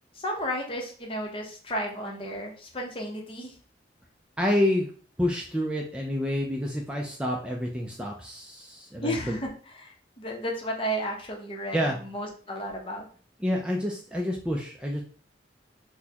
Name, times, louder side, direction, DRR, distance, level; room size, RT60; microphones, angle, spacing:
voice 1, 0.1-3.5 9.0-9.5 9.8-13.0, equal, 30° left, 0 dB, 0.7 m, -33 dB
voice 2, 4.4-4.9 5.2-9.4 11.7-12.0 13.4-15.0, left 1 dB, 5° right, -1 dB, 0.3 m, -28 dB
4.2 x 2.2 x 2.8 m, 0.42 s
head